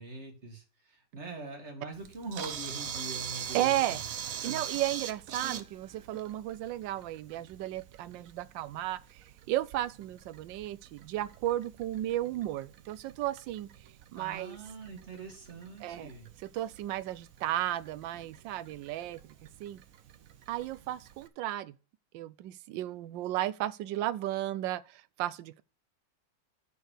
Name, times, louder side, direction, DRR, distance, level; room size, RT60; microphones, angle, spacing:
voice 1, 0.0-4.1 4.4-4.6 14.1-16.3, right 2 dB, 35° right, 2.4 m, -43 dB
Camera, 1.9-21.3, right 8 dB, 60° right, 1.0 m, -44 dB
voice 2, 3.5-4.0 4.4-13.7 14.1-14.6 15.8-16.1 16.4-19.2 19.6-19.8 20.5-21.8 22.1-25.6, right 14 dB, 80° right, 1.3 m, -34 dB
10.0 x 4.6 x 6.6 m
omnidirectional pair, 2.0 m